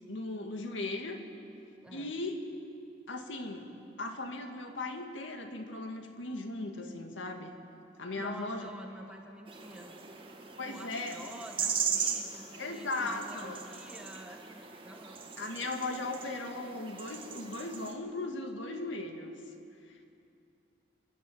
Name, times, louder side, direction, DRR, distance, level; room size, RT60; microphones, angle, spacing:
voice 1, 0.1-1.2 1.9-2.3 3.1-3.7 4.0-7.5 8.0-8.7 10.6-11.1 12.6-13.6 15.4-19.4 19.9-20.2, left 2 dB, 85° left, 4 dB, 2.1 m, -37 dB
voice 2, 1.8-2.1 8.1-10.0 10.6-15.2, right 1 dB, 5° right, 2 dB, 1.7 m, -49 dB
sound 1, 9.5-17.9, right 6 dB, 30° right, 1.8 m, -38 dB
29.5 x 11.5 x 9.0 m, 2.6 s
head